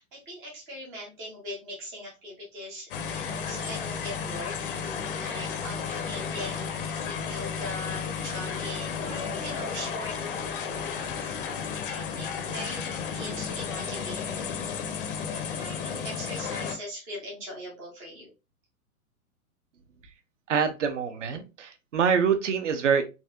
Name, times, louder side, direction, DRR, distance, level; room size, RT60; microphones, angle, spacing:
voice 1, 0.0-6.7 7.0-11.4 11.6-14.5 15.3-18.3, equal, 5° right, -4 dB, 0.4 m, -41 dB
sound 1, 2.9-16.8, left 6 dB, 40° left, 0.6 m, -33 dB
voice 2, 20.5-23.0, right 7 dB, 55° right, 8 dB, 0.8 m, -25 dB
4.1 x 2.6 x 2.4 m, 0.28 s
figure-of-eight pair, 110°, 44 cm